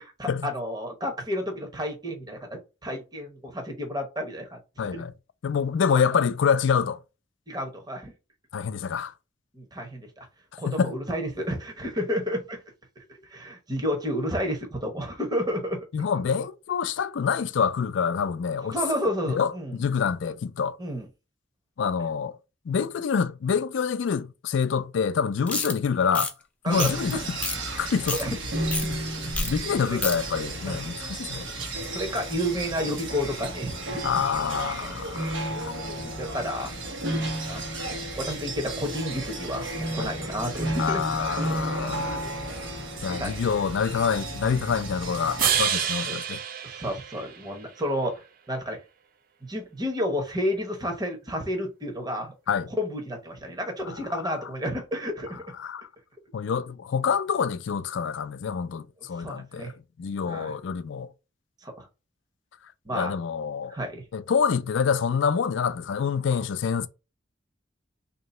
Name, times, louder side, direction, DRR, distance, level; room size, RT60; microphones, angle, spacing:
voice 1, 0.0-4.6 4.9-5.0 5.9-6.0 7.5-8.1 9.5-10.3 10.6-12.6 13.0-13.1 13.3-15.8 18.6-19.8 20.8-21.1 26.6-27.2 28.1-28.4 28.8-29.3 29.9-30.0 30.7-30.8 31.3-34.1 34.4-34.5 36.0-36.7 37.5-37.7 38.2-41.0 41.8-42.0 43.1-43.5 45.8-45.9 46.6-48.8 49.5-52.3 52.7-55.4 59.2-59.7 60.2-60.5 61.6-61.9 62.9-63.1 63.7-64.0, equal, 20° right, 1.0 m, -31 dB
voice 2, 4.8-5.1 5.4-7.0 8.5-9.1 10.7-10.9 15.9-18.8 19.3-20.8 21.8-22.4 22.7-26.3 26.7-27.2 27.8-28.4 28.9-29.0 29.4-31.4 34.0-35.7 40.0-40.1 40.8-42.2 43.0-46.4 52.5-52.7 53.9-54.0 55.6-55.8 56.3-59.7 60.0-61.1 62.9-63.8 64.1-66.9, left 6 dB, 75° left, 0.4 m, -26 dB
sound 1, 25.5-25.7 26.1-26.3 26.8-27.1 27.4-27.6 27.9-28.2 28.7-28.9 29.3-29.5 29.8-30.2, left 2 dB, 5° left, 0.6 m, -29 dB
sound 2, 26.7-45.6, right 1 dB, 85° right, 1.3 m, -33 dB
sound 3, 45.4-47.7, right 9 dB, 50° right, 0.5 m, -28 dB
3.1 x 2.8 x 4.2 m
head